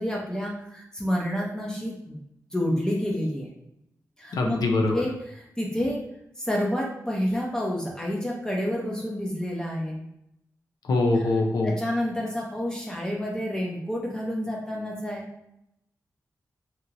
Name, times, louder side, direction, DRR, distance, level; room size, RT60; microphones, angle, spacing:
voice 1, 0.0-2.2 2.5-3.5 4.2-4.7 4.9-6.0 6.4-10.0 11.1-11.3 11.6-15.3, equal, 10° left, -3 dB, 0.6 m, -29 dB
voice 2, 4.3-5.0 10.9-11.7, left 2 dB, 80° left, 2 dB, 0.4 m, -23 dB
2.9 x 2.7 x 2.5 m, 0.82 s
cardioid pair, 80°, 7 cm